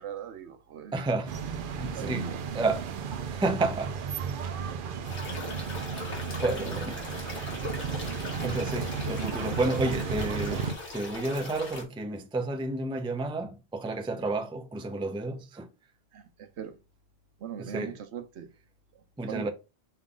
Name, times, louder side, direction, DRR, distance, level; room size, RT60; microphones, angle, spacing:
voice 1, 0.0-1.0 1.9-2.4 4.2-4.3 4.6-4.9 16.1-16.8 17.4-18.5 18.9-19.5, right 9 dB, 80° right, 1.0 m, -41 dB
voice 2, 0.9-1.4 1.7-2.9 3.3-4.4 6.4-7.1 7.8-7.9 8.4-15.7 17.6-17.9 19.2-19.5, right 2 dB, 10° right, 0.4 m, -31 dB
sound 1, 1.3-10.7, right 6 dB, 60° right, 0.6 m, -34 dB
sound 2, 5.0-11.8, left 2 dB, 90° left, 1.9 m, -40 dB
5.5 x 2.4 x 3.7 m
omnidirectional pair, 1.1 m